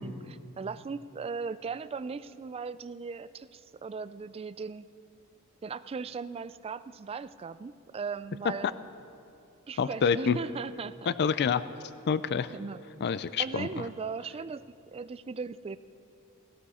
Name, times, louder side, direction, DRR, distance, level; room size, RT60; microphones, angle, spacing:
voice 1, 0.0-4.9 5.6-8.8 9.7-11.3 12.5-12.8 13.4-15.8, right 5 dB, 25° right, 15 dB, 0.3 m, -38 dB
voice 2, 9.8-10.4 11.1-11.6 12.1-12.5 13.0-13.8, left 6 dB, 50° left, 14 dB, 0.4 m, -27 dB
17.5 x 16.5 x 4.3 m, 2.6 s
head